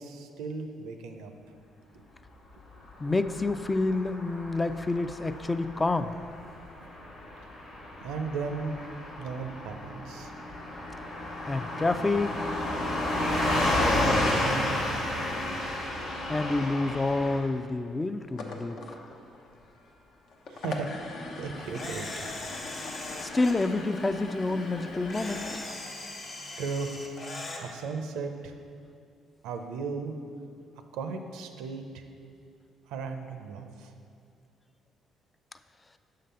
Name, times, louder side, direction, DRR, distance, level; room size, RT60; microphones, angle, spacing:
voice 1, 0.0-1.3 1.9-2.0 8.0-8.8 9.2-10.3 13.4-14.8 20.5-22.3 26.6-26.9 27.6-28.5 29.4-30.1 30.9-32.0 32.9-33.9, right 4 dB, 85° right, 6 dB, 0.5 m, -36 dB
Car passing by / Truck, 3.0-17.4, left 1 dB, 90° left, 1.4 m, -31 dB
voice 2, 3.0-6.1 11.5-12.5 16.3-18.8 22.8-22.9 23.2-25.5, left 2 dB, 25° left, 10 dB, 0.3 m, -28 dB
sound 1, 18.2-25.6, left 3 dB, 70° left, 0.7 m, -42 dB
Camera, 21.7-23.7 25.1-27.6, left 2 dB, 55° left, 1.0 m, -39 dB
6.5 x 3.8 x 5.5 m, 2.4 s
supercardioid pair, 65°, 0 cm